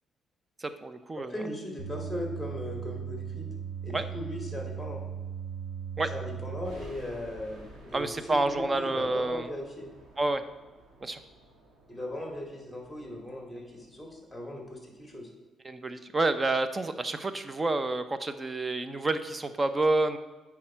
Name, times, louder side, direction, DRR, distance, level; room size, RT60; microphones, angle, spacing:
voice 1, 0.6-1.3 3.9-4.1 6.0-6.1 7.9-9.5 10.2-10.4 11.0-11.2 15.6-20.2, right 2 dB, 25° right, 11 dB, 0.6 m, -29 dB
voice 2, 1.2-3.5 3.8-5.0 6.1-9.9 11.9-15.3, left 1 dB, ahead, 1 dB, 2.5 m, -38 dB
sound 1, 1.8-6.7, right 8 dB, 85° right, 2.9 m, -38 dB
sound 2, 6.6-15.2, right 1 dB, 70° right, 2.2 m, -54 dB
8.6 x 5.9 x 4.4 m, 1.2 s
cardioid pair, 90°, 0 cm